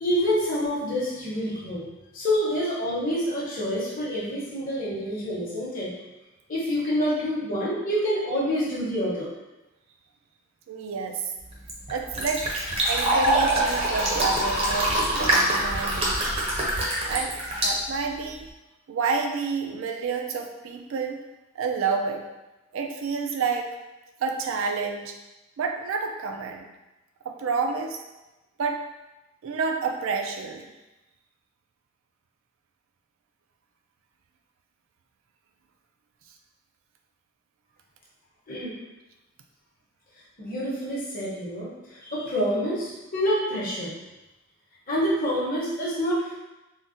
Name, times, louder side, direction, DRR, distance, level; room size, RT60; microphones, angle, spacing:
voice 1, 0.0-1.8 2.1-5.9 6.5-9.3 38.5-38.7 40.4-43.9 44.9-46.4, equal, 45° left, -7 dB, 0.9 m, -27 dB
voice 2, 10.7-11.2 11.9-12.5 12.9-16.4 17.1-18.5 18.9-21.2 21.6-22.2 22.7-23.7 24.2-25.2 25.6-26.7 27.2-28.0 28.6-28.8 29.4-30.7, right 5 dB, 80° right, 4 dB, 0.3 m, -29 dB
Fill (with liquid), 11.4-18.5, right 1 dB, 30° right, 0.6 m, -25 dB
3.7 x 2.1 x 2.5 m, 1.0 s
head